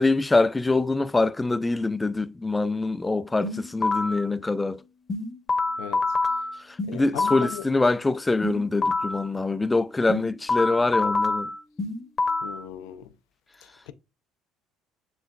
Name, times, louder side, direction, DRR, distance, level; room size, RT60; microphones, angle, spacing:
voice 1, 0.0-4.8 6.6-11.5, left 3 dB, 15° left, 0.4 m, -24 dB
sound 1, 3.4-4.3 5.1-7.6 8.4-9.3 10.1-12.6, left 3 dB, 35° left, 0.9 m, -27 dB
voice 2, 6.9-7.6 12.4-13.1 13.6-13.9, left 12 dB, 85° left, 0.5 m, -38 dB
7.3 x 3.1 x 2.3 m
supercardioid pair, 85°, 0 cm